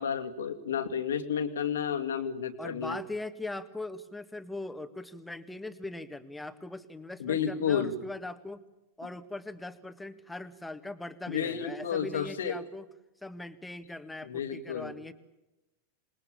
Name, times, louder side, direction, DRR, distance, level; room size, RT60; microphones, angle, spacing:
voice 1, 0.0-3.0 7.2-8.0 11.3-12.6 14.2-14.9, left 7 dB, 65° left, 7 dB, 2.3 m, -31 dB
voice 2, 2.6-8.6 9.0-12.9 13.2-15.1, left 2 dB, 5° left, 10 dB, 1.8 m, -40 dB
27.5 x 21.0 x 8.6 m, 0.96 s
figure-of-eight pair, 90°, 0 cm